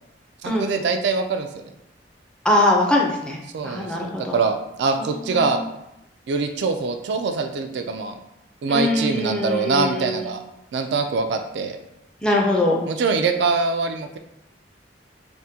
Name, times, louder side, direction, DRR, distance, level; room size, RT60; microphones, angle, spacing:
voice 1, 0.4-1.7 3.5-5.6 6.3-8.1 8.6-10.4 10.7-11.8 12.9-14.2, right 4 dB, 65° right, 6 dB, 0.3 m, -23 dB
voice 2, 2.4-3.4 3.6-4.4 5.3-5.6 8.7-10.2 12.2-12.8, left 1 dB, 5° left, -2 dB, 0.5 m, -22 dB
3.5 x 2.1 x 2.7 m, 0.85 s
head